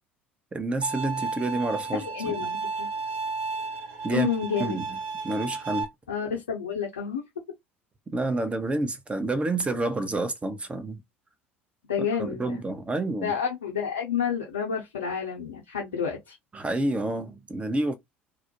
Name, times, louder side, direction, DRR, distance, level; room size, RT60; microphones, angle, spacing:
voice 1, 0.5-2.3 4.0-4.3 4.6-5.0 5.2-5.9 8.1-11.0 12.0-13.3 16.5-18.0, right 2 dB, 20° right, 0.6 m, -29 dB
Bowed string instrument, 0.8-5.8, right 4 dB, 60° right, 0.7 m, -33 dB
voice 2, 1.9-2.9 4.1-4.8 6.1-7.2 11.9-12.6 13.2-16.4, left 7 dB, 75° left, 0.7 m, -30 dB
2.3 x 2.1 x 2.9 m
figure-of-eight pair, 65°, 6 cm